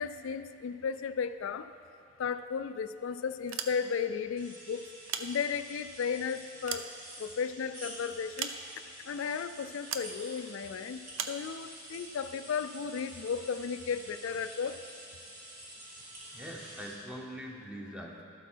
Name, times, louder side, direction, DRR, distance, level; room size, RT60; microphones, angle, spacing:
voice 1, 0.0-1.7 2.2-4.8 5.2-6.9 7.2-8.5 9.0-14.8, left 6 dB, 60° left, 10 dB, 0.3 m, -34 dB
sound 1, 3.4-4.2 4.9-5.9 6.4-7.6 8.4-9.0 9.9-10.2 11.1-11.5, right 7 dB, 60° right, 0.6 m, -39 dB
sound 2, 4.4-16.9, right 1 dB, 85° right, 2.8 m, -49 dB
voice 2, 16.3-18.2, equal, 5° right, -1 dB, 0.9 m, -43 dB
13.0 x 8.1 x 4.5 m, 2.6 s
head